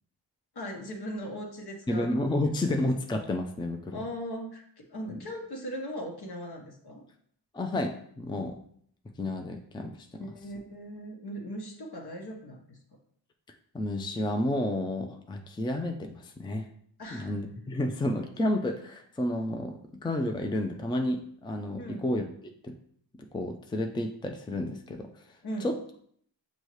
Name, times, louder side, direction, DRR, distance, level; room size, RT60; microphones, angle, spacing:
voice 1, 0.5-2.9 3.9-7.0 10.2-12.8 17.0-17.3 21.8-22.0 25.4-25.7, equal, 60° left, 1 dB, 1.3 m, -39 dB
voice 2, 1.9-4.0 5.1-5.2 7.5-8.6 9.2-10.3 13.7-16.7 17.1-22.2 22.6-22.7 23.2-25.1 25.6-25.8, left 1 dB, 10° left, 4 dB, 0.5 m, -31 dB
6.1 x 2.8 x 3.1 m, 0.64 s
cardioid pair, 50°, 44 cm